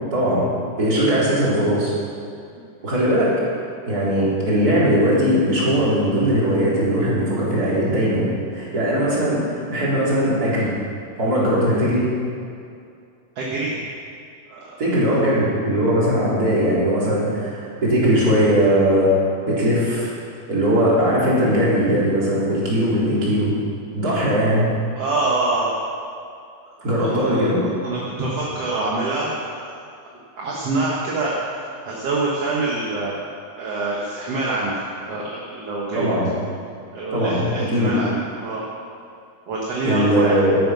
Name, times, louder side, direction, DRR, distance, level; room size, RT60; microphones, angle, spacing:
voice 1, 0.1-0.5 0.8-1.9 2.8-3.3 3.9-10.7 11.2-12.1 14.8-20.1 20.5-23.5 23.9-24.7 26.8-27.6 35.9-36.3 37.1-37.9 39.8-40.6, equal, 30° right, -7 dB, 4.0 m, -19 dB
voice 2, 13.4-13.8 14.5-14.7 25.0-25.7 27.0-29.7 30.4-31.3 31.9-33.1 33.6-36.1 36.9-38.1 38.4-38.7 39.5-40.4, right 2 dB, 60° right, -5 dB, 2.5 m, -25 dB
12.5 x 10.5 x 6.3 m, 2.4 s
omnidirectional pair, 3.3 m